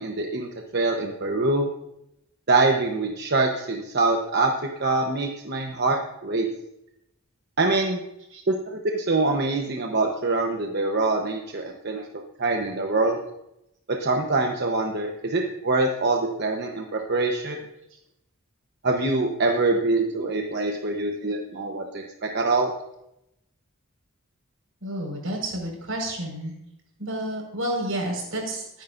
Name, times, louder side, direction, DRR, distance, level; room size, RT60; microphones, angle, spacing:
voice 1, 0.0-1.7 2.5-4.5 4.8-6.5 7.6-8.0 8.5-13.2 14.0-17.6 18.8-22.7, right 3 dB, 55° right, 2 dB, 1.0 m, -24 dB
voice 2, 24.8-26.5 27.0-28.8, right 1 dB, 85° right, 0 dB, 5.2 m, -30 dB
23.0 x 10.5 x 2.6 m, 0.84 s
head